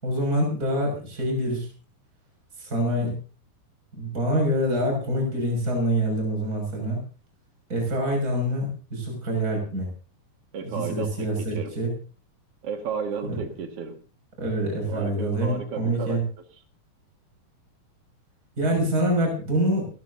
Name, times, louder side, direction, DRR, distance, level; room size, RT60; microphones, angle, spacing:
voice 1, 0.0-1.7 2.6-3.2 3.9-7.0 7.7-9.9 10.7-11.9 13.3-13.4 14.4-16.2 18.6-19.9, right 1 dB, 20° right, 0 dB, 6.9 m, -25 dB
voice 2, 10.5-11.1 11.4-11.7 12.6-14.0 14.9-16.2, right 6 dB, 45° right, 5 dB, 2.5 m, -33 dB
29.0 x 13.5 x 2.8 m, 0.35 s
omnidirectional pair, 4.5 m